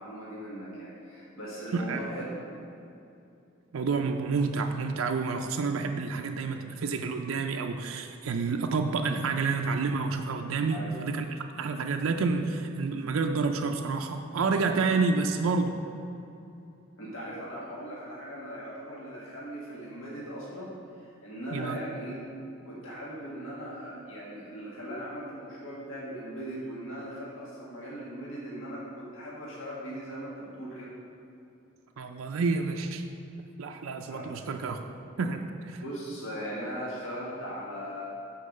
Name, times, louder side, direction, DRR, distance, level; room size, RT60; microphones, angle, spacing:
voice 1, 0.0-2.3 10.7-10.9 17.0-22.2 22.6-30.9 34.1-34.3 35.8-38.2, equal, 75° left, -6 dB, 1.7 m, -39 dB
voice 2, 3.7-15.8 21.5-21.8 32.0-33.0 33.6-34.8 35.2-35.8, right 4 dB, 90° right, 4 dB, 0.4 m, -29 dB
6.6 x 4.7 x 6.4 m, 2.7 s
head